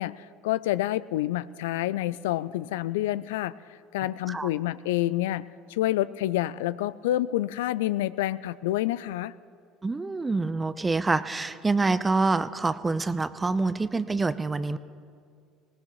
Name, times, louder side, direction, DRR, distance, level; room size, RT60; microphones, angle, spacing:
voice 1, 0.0-9.3, left 14 dB, 75° left, 17 dB, 0.3 m, -28 dB
voice 2, 9.8-14.8, right 3 dB, 20° right, 14 dB, 0.7 m, -26 dB
19.5 x 19.0 x 3.1 m, 2.2 s
hypercardioid pair, 70°, 0 cm